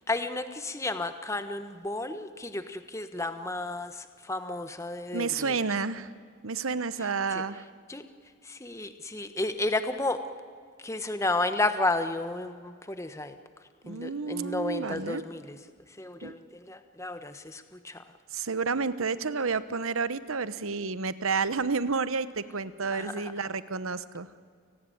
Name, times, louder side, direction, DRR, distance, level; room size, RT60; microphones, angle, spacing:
voice 1, 0.1-5.6 7.3-7.4 7.9-8.1 8.4-10.2 10.8-13.4 13.9-15.6 16.0-18.1 22.9-23.5, left 2 dB, 15° left, 9 dB, 1.2 m, -32 dB
voice 2, 5.1-6.1 6.4-7.6 13.8-15.2 16.2-16.3 18.3-24.3, right 4 dB, 85° right, 14 dB, 1.0 m, -30 dB
29.5 x 18.5 x 9.2 m, 2.1 s
head